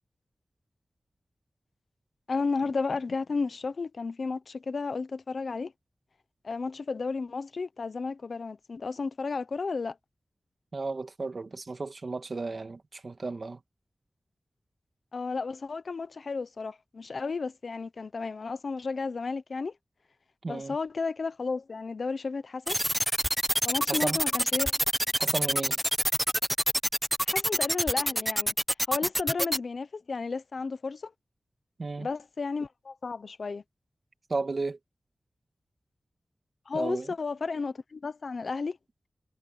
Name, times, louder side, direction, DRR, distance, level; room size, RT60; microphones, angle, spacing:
voice 1, 2.3-5.7 6.4-10.0 15.1-19.7 20.5-22.8 23.6-24.7 27.3-28.5 28.9-31.1 32.0-33.6 36.7-38.8, left 4 dB, 70° left, 0.9 m, -33 dB
voice 2, 10.7-13.6 20.4-20.8 23.9-24.2 25.2-25.8 31.8-32.1 34.3-34.8 36.7-37.1, right 3 dB, 55° right, 2.2 m, -33 dB
sound 1, 22.7-29.6, equal, 5° right, 1.0 m, -26 dB
wide cardioid pair, 70°, 0 cm